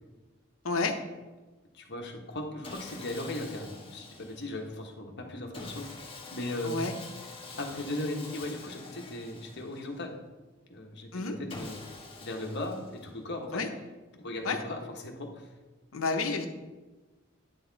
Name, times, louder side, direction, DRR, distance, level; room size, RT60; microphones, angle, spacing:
voice 1, 1.7-6.8 7.6-10.2 10.7-11.8 12.2-13.6 14.1-15.5, left 1 dB, 55° left, 2 dB, 1.2 m, -38 dB
Sawing, 2.6-4.7 5.5-10.1 11.5-13.3, left 3 dB, 25° left, 1.3 m, -46 dB
voice 2, 15.9-16.5, left 4 dB, 85° left, 5 dB, 0.9 m, -29 dB
9.4 x 6.8 x 4.0 m, 1.2 s
head